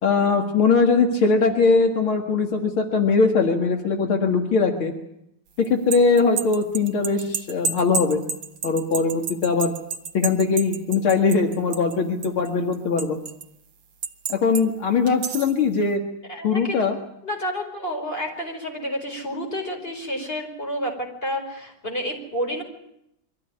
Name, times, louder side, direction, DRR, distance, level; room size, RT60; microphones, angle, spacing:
voice 1, 0.0-4.9 5.6-8.2 8.6-9.7 10.1-13.2 14.3-16.0 16.4-17.0, left 4 dB, 75° left, 3 dB, 2.6 m, -21 dB
sound 1, 5.7-12.0 12.2-13.4 14.0-14.6 15.1-15.6, right 5 dB, 60° right, 1.7 m, -30 dB
voice 2, 16.3-16.9 17.2-22.6, equal, 25° left, 2 dB, 5.2 m, -30 dB
24.0 x 15.5 x 9.9 m, 0.80 s
omnidirectional pair, 2.3 m